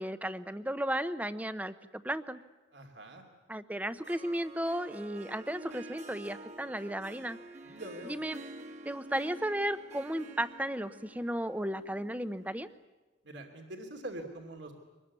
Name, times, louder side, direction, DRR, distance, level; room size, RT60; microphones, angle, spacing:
voice 1, 0.0-2.4 3.5-7.4 8.0-8.4 8.8-12.7, right 1 dB, 10° right, 13 dB, 0.7 m, -34 dB
voice 2, 2.7-3.2 7.6-8.2 13.2-14.7, right 1 dB, 70° right, 4 dB, 3.0 m, -44 dB
Harp, 3.8-12.8, right 2 dB, 35° right, 1.7 m, -49 dB
25.0 x 21.0 x 9.7 m, 1.2 s
head